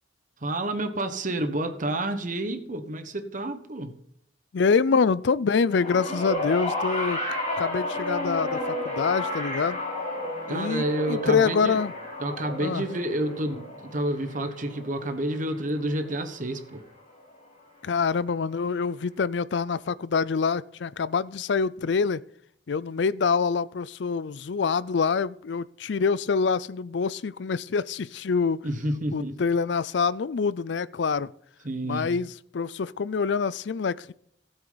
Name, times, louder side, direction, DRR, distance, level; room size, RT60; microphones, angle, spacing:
voice 1, 0.4-3.9 10.5-11.8 12.2-16.8 28.6-29.4 31.6-32.1, right 1 dB, 45° right, 1.3 m, -29 dB
voice 2, 4.5-7.2 7.6-8.6 8.8-9.8 10.5-11.9 12.6-12.9 17.8-22.2 22.7-28.6 29.1-31.3 31.8-34.1, left 5 dB, 70° left, 0.4 m, -25 dB
sound 1, 5.7-16.2 17.2-17.3, left 1 dB, 40° left, 6.1 m, -32 dB
16.5 x 8.1 x 4.0 m
head